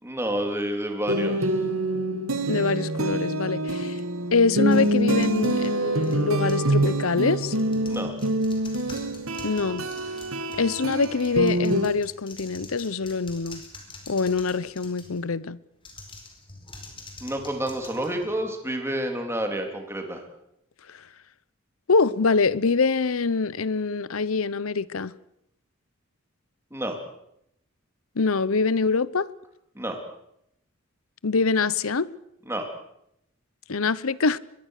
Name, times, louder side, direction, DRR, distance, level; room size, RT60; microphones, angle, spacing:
voice 1, 0.0-1.5 7.9-8.1 17.2-20.2 26.7-27.0 29.8-30.0 32.5-32.7, right 1 dB, 10° right, 3.6 m, -29 dB
sound 1, 1.1-11.9, right 1 dB, 90° right, 1.9 m, -26 dB
voice 2, 2.5-4.0 4.3-7.6 9.4-9.8 10.6-13.6 14.1-15.6 20.9-21.0 21.9-25.1 28.2-29.3 31.2-32.1 33.7-34.4, left 4 dB, 80° left, 0.9 m, -24 dB
sound 2, 4.7-6.7 7.3-15.3 15.8-18.7, left 3 dB, 25° left, 4.8 m, -46 dB
23.5 x 22.0 x 6.7 m
head